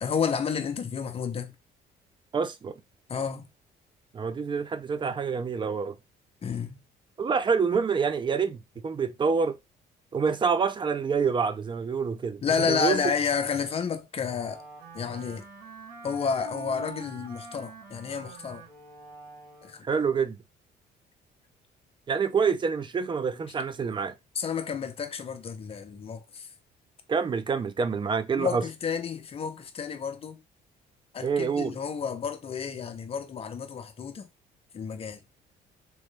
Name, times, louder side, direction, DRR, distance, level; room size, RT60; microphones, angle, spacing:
voice 1, 0.0-1.5 3.1-3.4 6.4-6.8 12.4-14.6 14.9-15.4 16.0-18.6 19.6-19.9 24.3-26.5 28.4-30.4 31.1-34.3 34.7-35.2, left 6 dB, 35° left, 0.8 m, -30 dB
voice 2, 2.3-2.7 4.1-6.0 7.2-9.6 10.1-13.0 19.8-20.4 22.1-24.1 27.1-28.6 31.2-31.8, right 5 dB, 30° right, 0.6 m, -27 dB
Wind instrument woodwind instrument, 14.2-20.0, right 4 dB, 75° right, 2.0 m, -46 dB
3.1 x 3.1 x 3.2 m
cardioid pair, 110°, 17 cm